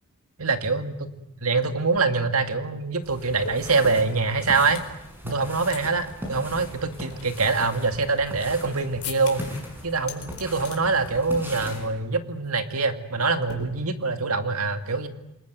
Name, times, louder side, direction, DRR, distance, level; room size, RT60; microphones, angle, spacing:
voice 1, 0.4-1.1 1.4-4.8 5.2-9.5 9.8-15.1, right 4 dB, 70° right, 8 dB, 2.3 m, -24 dB
sound 1, 1.6-1.7 1.9-4.9 5.3-5.8 6.1-6.2 6.7-8.6 9.0-9.6 9.9-10.8 11.1-11.4 11.7-12.0 12.3-12.5 13.5-14.2, left 7 dB, 70° left, 4.3 m, -42 dB
sound 2, 3.0-11.9, equal, 10° right, 7.2 m, -39 dB
28.5 x 20.5 x 9.3 m, 0.90 s
head